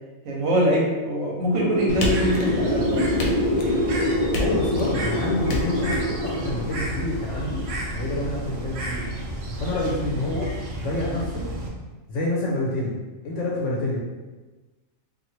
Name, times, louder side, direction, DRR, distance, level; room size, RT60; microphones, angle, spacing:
voice 1, 0.2-3.1, right 1 dB, 80° right, -3 dB, 1.2 m, -23 dB
sound 1, 1.5-7.7, left 1 dB, 45° left, 0.4 m, -26 dB
Bird, 1.9-11.7, right 1 dB, 60° right, 0.6 m, -32 dB
sound 2, 2.0-2.8 3.2-3.8 4.3-5.0 5.5-6.0, left 2 dB, 90° left, 1.1 m, -29 dB
voice 2, 4.4-9.0 9.6-10.5 10.8-11.5 12.1-13.0 13.2-14.0, left 1 dB, 70° left, -4 dB, 0.9 m, -27 dB
2.9 x 2.5 x 2.7 m, 1.2 s
omnidirectional pair, 1.4 m